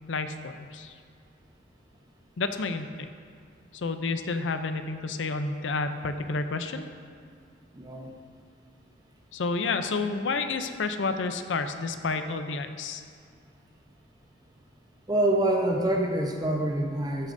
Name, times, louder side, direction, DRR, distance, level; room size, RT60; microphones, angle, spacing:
voice 1, 0.1-0.9 2.4-3.1 3.7-6.8 9.3-13.0, left 3 dB, 75° left, 8 dB, 0.5 m, -30 dB
voice 2, 7.7-8.1 15.1-17.3, right 1 dB, 20° right, 2 dB, 0.8 m, -26 dB
13.5 x 8.3 x 2.6 m, 2.2 s
head